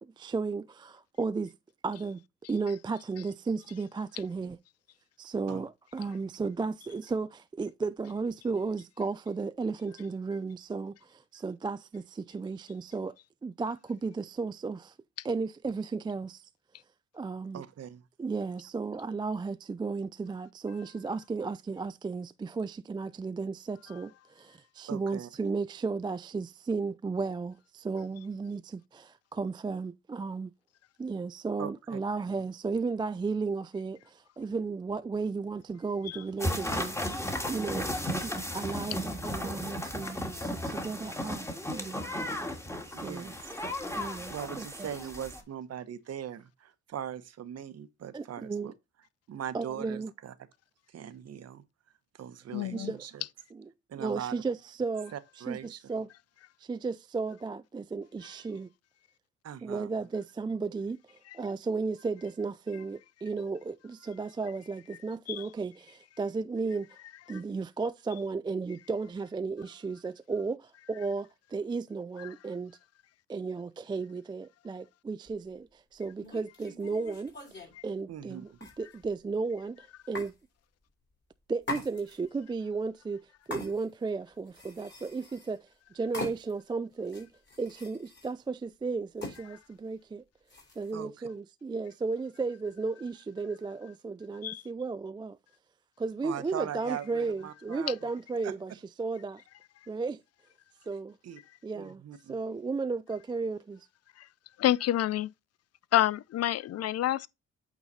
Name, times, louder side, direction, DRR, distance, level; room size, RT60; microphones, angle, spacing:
voice 1, 0.0-1.5 1.8-2.2 2.5-4.6 5.2-13.2 13.4-15.0 15.2-16.5 17.1-17.6 18.2-30.5 31.0-37.2 37.5-42.0 42.9-43.3 43.9-44.9 48.1-48.7 49.5-50.1 52.7-53.0 53.5-53.7 54.0-55.1 55.5-56.1 56.6-58.7 59.6-67.0 67.3-72.8 73.3-78.5 78.8-80.3 81.5-85.7 85.9-87.3 87.6-90.2 90.8-95.4 96.0-98.7 99.0-99.4 99.9-100.2 100.9-101.2 101.6-102.0 102.3-103.9, right 4 dB, 15° right, 0.3 m, -34 dB
voice 2, 17.5-18.0 24.9-25.3 31.6-32.0 42.9-43.5 44.3-48.7 49.3-50.3 50.9-51.6 52.1-53.2 53.9-54.3 55.1-55.8 59.4-59.9 78.1-78.4 90.9-91.3 96.2-98.1 98.4-98.5 101.2-101.4 101.7-102.4, right 9 dB, 55° right, 1.0 m, -40 dB
sound 1, 36.4-45.4, left 1 dB, 10° left, 1.7 m, -35 dB
voice 3, 52.5-52.9 65.3-65.5 67.3-67.4 72.2-72.3 94.4-94.6 104.2-104.3 104.6-105.3 105.9-107.3, left 13 dB, 55° left, 0.4 m, -28 dB
sound 2, 75.3-75.4 76.2-77.8 78.6-79.2 80.1-80.3 81.6-82.4 83.5-84.1 84.5-85.6 86.1-86.7 87.1-88.3 89.2-89.4 90.5-90.9, left 2 dB, 35° left, 3.4 m, -42 dB
8.6 x 4.0 x 4.2 m
cardioid pair, 90°, 30 cm